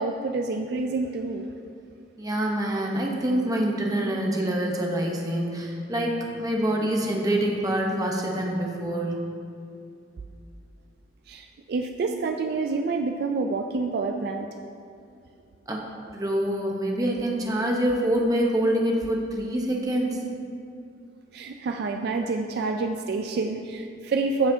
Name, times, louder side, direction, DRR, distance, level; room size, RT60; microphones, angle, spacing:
voice 1, 0.0-1.5 11.3-14.5 21.3-24.5, right 3 dB, 55° right, 4 dB, 0.3 m, -28 dB
voice 2, 2.2-9.2 15.7-20.2, right 1 dB, 20° right, -1 dB, 0.8 m, -26 dB
13.5 x 4.8 x 2.7 m, 2.5 s
head